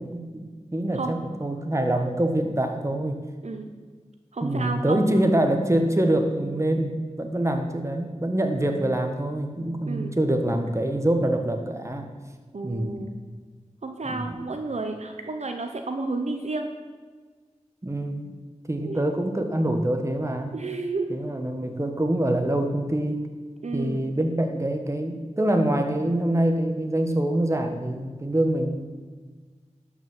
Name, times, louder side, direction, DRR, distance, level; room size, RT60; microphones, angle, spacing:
voice 1, 0.0-3.2 4.4-12.1 12.6-13.1 14.1-14.3 17.8-18.3 18.7-20.5 21.1-23.2 23.7-28.8, right 1 dB, 25° right, 5 dB, 1.5 m, -25 dB
voice 2, 4.3-5.0 9.8-10.2 12.5-13.1 13.8-16.7 18.8-19.1 20.5-21.1 23.6-24.0, right 3 dB, 65° right, 5 dB, 0.9 m, -31 dB
12.0 x 6.3 x 7.3 m, 1.4 s
wide cardioid pair, 50°, 12 cm